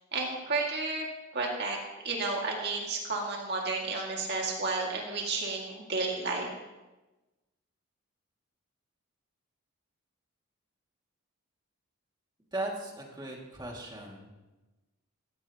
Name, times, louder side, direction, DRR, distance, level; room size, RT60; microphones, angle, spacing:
voice 1, 0.1-1.1 1.3-1.8 2.0-6.5, right 3 dB, 50° right, -1 dB, 2.1 m, -32 dB
voice 2, 12.5-14.3, right 2 dB, 20° right, -1 dB, 2.2 m, -37 dB
16.0 x 15.5 x 3.0 m, 1.1 s
head